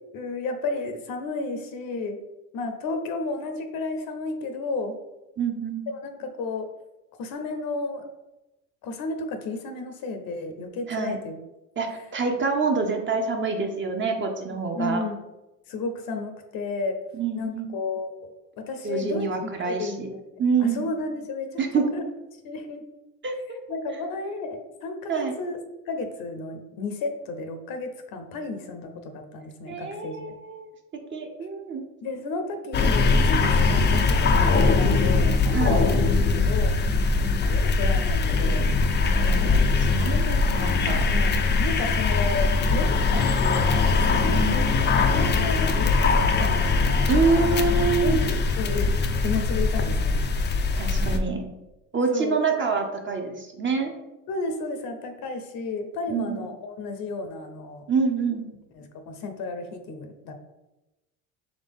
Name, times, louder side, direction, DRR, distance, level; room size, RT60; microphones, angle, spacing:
voice 1, 0.1-2.2 2.5-5.0 5.9-6.7 7.2-8.1 8.8-11.4 14.5-15.2 15.7-17.0 17.3-18.2 18.6-19.3 19.6-20.2 20.6-22.0 22.4-22.9 23.7-25.6 25.9-30.3 32.0-35.8 36.4-36.7 37.4-38.7 41.0-41.3 41.6-47.4 48.0-48.9 49.2-50.2 52.1-52.4 54.3-57.8 58.7-60.3, left 3 dB, 60° left, 6 dB, 0.8 m, -32 dB
voice 2, 5.4-5.8 10.9-11.2 11.8-15.0 17.1-17.7 18.8-20.1 20.4-20.9 21.6-21.9 23.2-23.4 25.1-25.3 29.7-30.7 31.1-31.8 35.5-35.8 39.0-41.0 44.3-44.6 47.1-48.2 50.7-51.4 51.9-53.9 56.1-56.5 57.9-58.4, right 5 dB, 30° right, 3 dB, 0.7 m, -26 dB
sound 1, 32.7-51.2, left 4 dB, 30° left, 0.4 m, -21 dB
4.0 x 3.2 x 3.5 m, 0.99 s
supercardioid pair, 90°, 40 cm